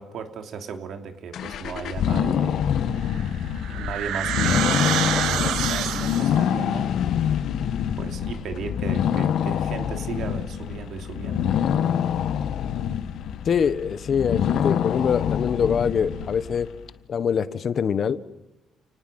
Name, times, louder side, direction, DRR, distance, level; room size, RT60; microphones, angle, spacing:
voice 1, 0.0-3.0 3.7-6.9 8.0-11.5, right 6 dB, 70° right, 6 dB, 3.0 m, -36 dB
sound 1, 1.3-16.8, left 9 dB, 75° left, 1.4 m, -26 dB
sound 2, 3.1-6.5, right 10 dB, 90° right, 1.6 m, -27 dB
voice 2, 13.4-16.7 17.1-18.2, left 7 dB, 55° left, 14 dB, 1.3 m, -24 dB
29.0 x 19.5 x 7.9 m, 0.95 s
cardioid pair, 90°, 0 cm